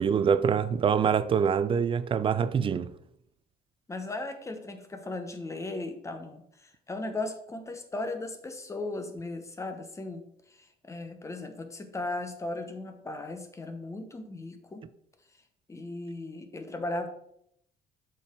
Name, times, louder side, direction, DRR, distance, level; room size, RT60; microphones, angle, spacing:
voice 1, 0.0-2.9, right 7 dB, 30° right, 0.4 m, -25 dB
voice 2, 3.9-10.3 10.6-14.8 15.7-17.1, left 2 dB, 15° left, 1.0 m, -37 dB
7.0 x 4.6 x 3.6 m
cardioid pair, 110°, 17 cm